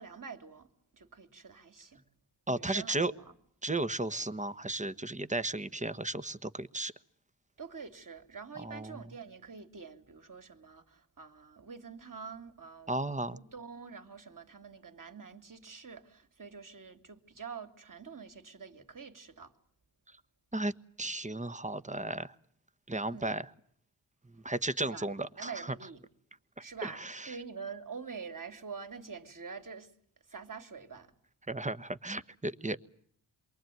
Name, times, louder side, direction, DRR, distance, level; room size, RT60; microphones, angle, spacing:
voice 1, 0.0-2.0 2.5-3.3 7.6-12.9 13.3-19.5 23.1-23.4 24.8-25.1 25.4-26.0 26.6-29.9 30.3-31.1, right 5 dB, 40° right, 3.1 m, -46 dB
voice 2, 2.5-3.1 3.6-6.9 8.6-9.0 12.9-13.4 20.5-20.7 21.0-22.3 22.9-23.5 24.4-25.7 26.8-27.3 31.5-32.8, right 2 dB, 15° right, 1.3 m, -34 dB
27.5 x 23.0 x 9.3 m
cardioid pair, 50°, 48 cm